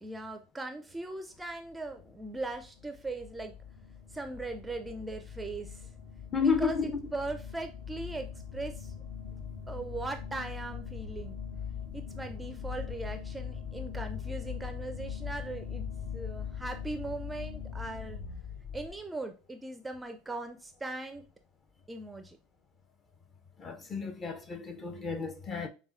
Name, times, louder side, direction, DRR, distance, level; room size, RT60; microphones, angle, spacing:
voice 1, 0.0-3.5 4.1-5.8 6.4-8.3 8.5-8.9 9.7-11.4 11.9-15.8 16.1-18.2 18.7-21.2 21.9-22.4, right 2 dB, 10° right, 0.5 m, -39 dB
sound 1, 1.5-19.0, left 7 dB, 60° left, 1.2 m, -41 dB
voice 2, 6.3-6.9 23.6-25.7, left 5 dB, 25° left, 0.8 m, -31 dB
6.8 x 2.3 x 2.5 m
figure-of-eight pair, 75°, 0 cm